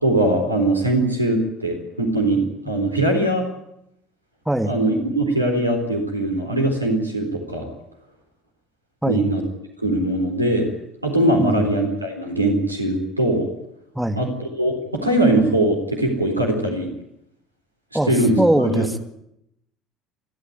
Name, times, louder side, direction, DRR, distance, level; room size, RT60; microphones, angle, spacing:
voice 1, 0.0-3.5 4.7-7.7 9.1-9.4 9.8-10.7 11.0-13.5 14.2-16.9 18.0-18.9, right 1 dB, 90° right, 3 dB, 3.9 m, -21 dB
voice 2, 13.9-14.3 17.9-18.1 18.4-19.0, right 1 dB, 5° right, 7 dB, 2.3 m, -21 dB
29.0 x 13.0 x 9.5 m, 0.80 s
figure-of-eight pair, 60°, 0 cm